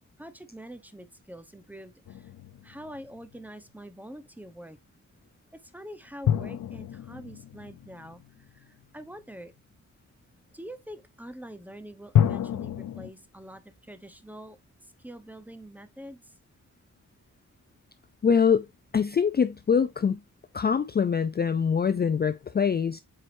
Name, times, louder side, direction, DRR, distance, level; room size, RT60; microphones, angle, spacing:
voice 1, 0.2-2.3 2.6-4.8 5.5-9.5 10.5-16.3, equal, 5° right, 0.9 m, -45 dB
sound 1, 2.1-3.4 6.2-8.8 12.1-13.1, left 9 dB, 70° left, 0.7 m, -29 dB
voice 2, 18.2-18.7 18.9-20.2 20.5-23.0, left 6 dB, 30° left, 0.4 m, -24 dB
7.8 x 4.6 x 2.6 m
wide cardioid pair, 105°, 32 cm